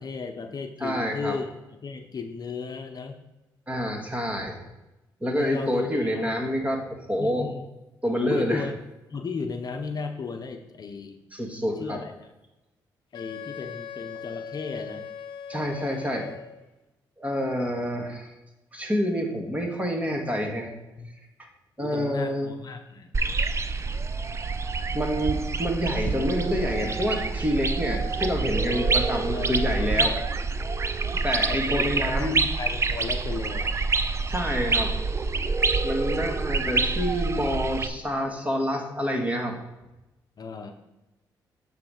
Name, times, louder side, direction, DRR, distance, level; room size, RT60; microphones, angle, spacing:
voice 1, 0.0-1.5 1.8-3.2 5.3-6.4 7.2-7.7 8.2-8.8 9.1-11.2 11.6-12.3 13.1-15.1 21.0-21.1 21.8-23.1 29.3-30.1 31.5-33.8 40.4-40.7, left 4 dB, 50° left, 5 dB, 0.8 m, -35 dB
voice 2, 0.8-1.4 3.7-4.6 5.2-7.5 8.0-8.6 11.3-12.0 15.5-16.3 17.2-18.3 18.7-20.7 21.8-22.5 24.9-30.2 31.2-32.4 34.3-35.0 35.8-39.6, equal, 15° right, 1 dB, 2.0 m, -27 dB
Wind instrument woodwind instrument, 13.1-16.7, left 7 dB, 75° left, 0.6 m, -40 dB
sound 1, 23.1-37.9, right 4 dB, 35° right, 0.5 m, -27 dB
8.3 x 3.4 x 6.5 m, 1.0 s
supercardioid pair, 60°, 9 cm